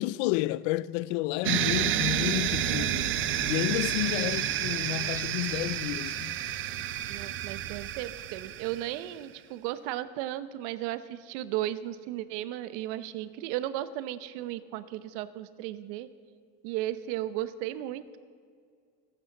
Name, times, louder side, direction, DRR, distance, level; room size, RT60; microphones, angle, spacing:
voice 1, 0.0-3.1 3.5-6.4, left 17 dB, 70° left, 0.5 m, -30 dB
sound 1, 1.4-9.0, right 13 dB, 35° right, 0.5 m, -30 dB
sound 2, 1.6-7.5, left 2 dB, 35° left, 2.1 m, -44 dB
voice 2, 2.7-3.1 7.1-16.1 16.6-18.2, right 13 dB, 75° right, 0.9 m, -35 dB
16.0 x 9.9 x 7.3 m
cardioid pair, 155°, 36 cm